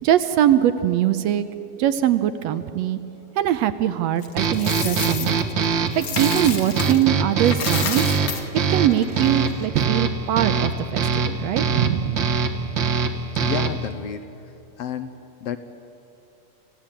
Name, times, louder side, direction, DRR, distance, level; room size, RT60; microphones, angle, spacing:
voice 1, 0.0-1.5 1.8-3.0 3.4-5.4 6.0-8.1 8.7-12.7, right 11 dB, 75° right, 11 dB, 1.8 m, -22 dB
Coin (dropping), 4.2-7.1 7.4-9.7, left 6 dB, 50° left, 1.1 m, -31 dB
sound 1, 4.4-13.9, right 5 dB, 55° right, 1.5 m, -23 dB
voice 2, 13.3-15.1 15.4-15.6, left 8 dB, 70° left, 9 dB, 1.6 m, -31 dB
26.5 x 16.5 x 8.8 m, 2.8 s
omnidirectional pair, 3.3 m